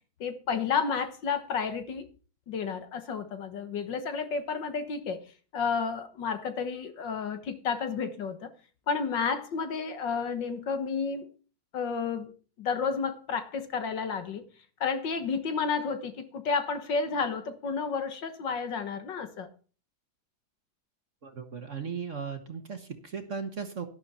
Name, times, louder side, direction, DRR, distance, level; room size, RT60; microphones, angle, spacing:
voice 1, 0.2-2.1 2.5-5.2 5.5-8.5 8.9-11.3 11.7-12.3 12.6-14.4 14.8-19.5, left 5 dB, 60° left, 1.9 m, -31 dB
voice 2, 21.2-23.9, right 6 dB, 40° right, 1.6 m, -37 dB
11.5 x 11.5 x 4.2 m
omnidirectional pair, 2.2 m